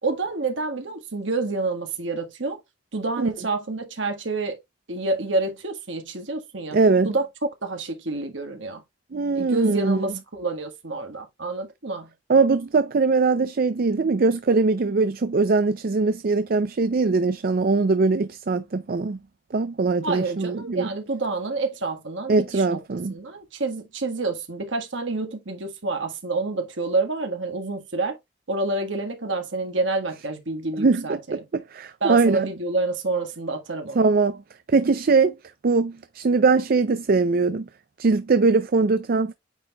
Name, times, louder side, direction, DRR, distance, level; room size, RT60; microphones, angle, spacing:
voice 1, 0.0-2.6 2.9-4.6 4.9-6.8 7.0-8.8 9.3-12.1 20.0-22.8 23.1-28.2 28.5-31.4 32.0-34.1, right 3 dB, 75° right, 1.6 m, -28 dB
voice 2, 6.7-7.1 9.1-10.1 12.3-19.2 19.5-20.9 22.3-23.1 30.8-32.5 34.0-34.4 34.7-35.4 35.6-37.7 38.0-39.3, right 4 dB, 50° right, 0.5 m, -21 dB
8.9 x 4.5 x 2.3 m
head